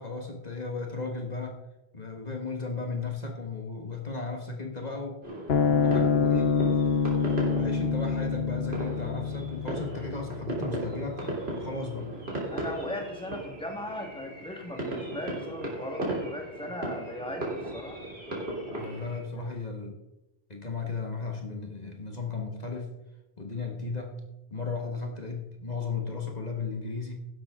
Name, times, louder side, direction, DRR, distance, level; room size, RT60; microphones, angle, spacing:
voice 1, 0.0-1.6 1.9-5.2 5.5-6.5 7.5-12.1 18.8-19.9 20.5-22.9 23.4-27.2, left 4 dB, 40° left, 1 dB, 1.6 m, -35 dB
sound 1, 5.2-19.2, right 1 dB, 80° right, 3.5 m, -36 dB
sound 2, 5.5-12.1, left 6 dB, 75° left, 1.1 m, -27 dB
voice 2, 12.5-18.1 19.4-19.5, left 1 dB, 5° left, 3 dB, 1.6 m, -38 dB
13.0 x 11.0 x 3.7 m, 0.94 s
omnidirectional pair, 1.0 m